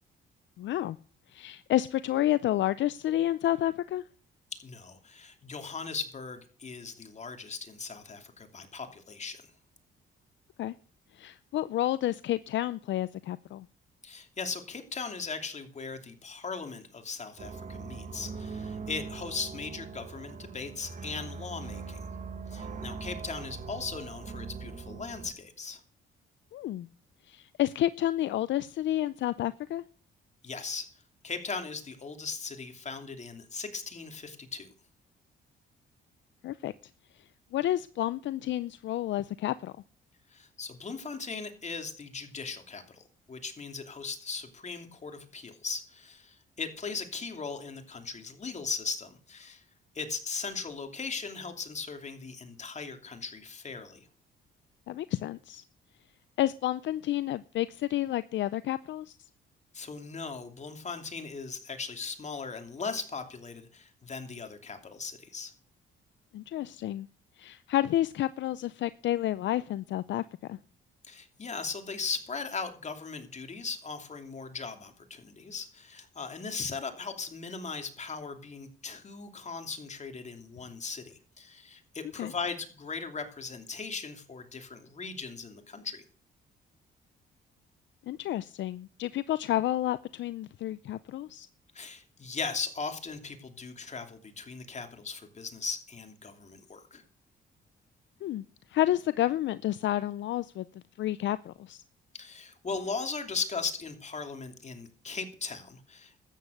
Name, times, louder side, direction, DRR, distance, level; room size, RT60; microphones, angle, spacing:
voice 1, 0.6-1.0 1.3-4.0 10.6-10.7 11.2-13.7 26.5-26.9 27.3-29.8 36.4-36.7 37.5-39.7 54.9-55.6 56.4-59.1 66.3-67.1 67.4-70.2 70.5-70.6 82.2-82.3 88.1-91.5 98.2-98.4 98.7-100.6 101.0-101.8, left 13 dB, 70° left, 16 dB, 0.5 m, -30 dB
voice 2, 4.5-9.4 14.0-22.0 22.5-25.8 30.4-30.9 31.2-34.7 40.3-49.6 49.9-54.1 59.7-65.5 71.0-86.0 91.7-97.0 102.1-106.2, left 4 dB, 35° left, 6 dB, 2.9 m, -38 dB
sound 1, 17.4-25.3, right 5 dB, 40° right, 1.5 m, -41 dB
13.0 x 9.3 x 6.6 m, 0.42 s
cardioid pair, 90°, 20 cm